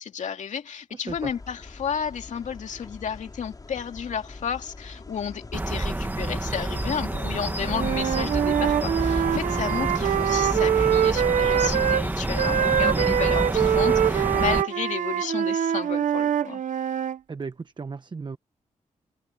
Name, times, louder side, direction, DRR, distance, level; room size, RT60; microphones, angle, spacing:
voice 1, 0.0-16.6, left 7 dB, 70° left, 2.5 m, -32 dB
voice 2, 0.9-1.3 12.8-13.2 17.3-18.4, right 4 dB, 35° right, 1.0 m, -35 dB
sound 1, 1.1-11.2, left 3 dB, 30° left, 3.6 m, -43 dB
sound 2, 5.5-14.6, right 2 dB, 15° right, 1.5 m, -28 dB
Wind instrument woodwind instrument, 7.7-12.0 12.4-17.2, right 9 dB, 75° right, 1.0 m, -24 dB
cardioid pair, 85°, 13 cm